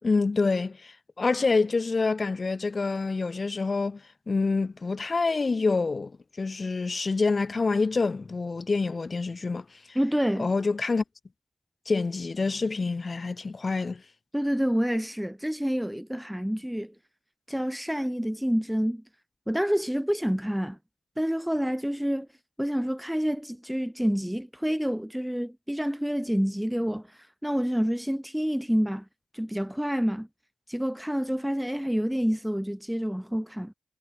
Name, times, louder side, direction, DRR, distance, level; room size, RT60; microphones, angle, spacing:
voice 1, 0.0-4.0 4.3-6.1 6.4-10.0 10.4-11.0 11.9-14.0, left 4 dB, 55° left, 5.7 m, -27 dB
voice 2, 9.9-10.5 14.3-16.9 17.5-19.0 19.5-20.8 21.2-22.3 22.6-29.0 29.3-30.3 30.7-33.7, equal, 5° right, 1.5 m, -28 dB
cardioid pair, 40°, 0 cm